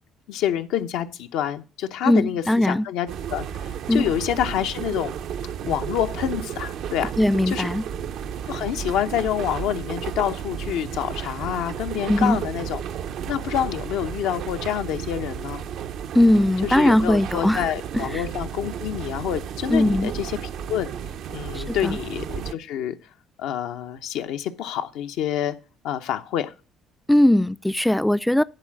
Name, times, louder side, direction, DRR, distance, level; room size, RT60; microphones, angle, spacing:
voice 1, 0.3-5.2 5.6-7.1 7.5-7.7 8.5-12.8 13.3-15.6 16.6-20.4 20.7-20.9 21.3-23.0 23.4-25.6 25.8-26.5, left 10 dB, 75° left, 0.8 m, -27 dB
voice 2, 2.0-2.9 3.9-4.1 7.2-7.8 12.1-12.4 16.1-17.6 17.9-18.3 19.7-20.1 21.5-22.0 27.1-28.4, left 1 dB, 5° left, 0.4 m, -19 dB
sound 1, 3.1-22.5, right 8 dB, 70° right, 0.6 m, -33 dB
11.0 x 3.9 x 7.5 m
hypercardioid pair, 60°, 0 cm